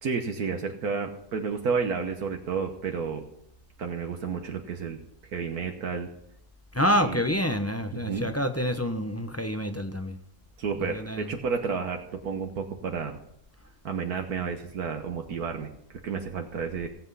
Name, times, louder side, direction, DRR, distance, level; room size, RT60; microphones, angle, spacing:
voice 1, 0.0-3.2 3.8-6.1 7.0-7.2 7.9-8.3 10.6-13.2 13.8-16.9, right 5 dB, 70° right, 4 dB, 1.6 m, -31 dB
voice 2, 6.7-10.2 10.8-11.3, equal, 15° left, 7 dB, 0.6 m, -27 dB
18.0 x 8.0 x 5.5 m, 0.76 s
omnidirectional pair, 1.7 m